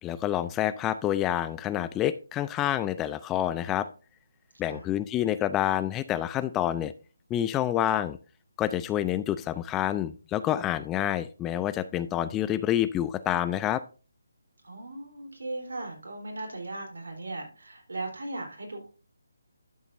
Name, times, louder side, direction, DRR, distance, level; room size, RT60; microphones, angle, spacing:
voice 1, 0.0-3.9 4.6-6.9 7.3-8.2 8.6-13.8, left 12 dB, 15° left, 15 dB, 0.3 m, -28 dB
voice 2, 14.6-18.9, right 2 dB, 75° right, 2 dB, 3.6 m, -38 dB
12.5 x 7.1 x 2.6 m, 0.34 s
figure-of-eight pair, 155°, 0 cm